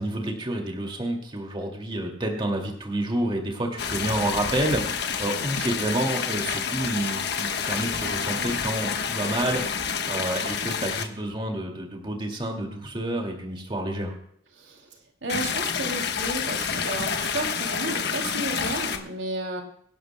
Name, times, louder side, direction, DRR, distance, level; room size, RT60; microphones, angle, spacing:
voice 1, 0.0-14.1, right 1 dB, 30° right, 1 dB, 2.3 m, -29 dB
WT - fuente edrada Stereo, 3.8-11.0 15.3-19.0, left 6 dB, 65° left, 1.2 m, -29 dB
voice 2, 14.6-14.9 15.2-19.6, right 2 dB, 85° right, 2 dB, 2.6 m, -32 dB
25.5 x 11.0 x 2.2 m, 0.67 s
head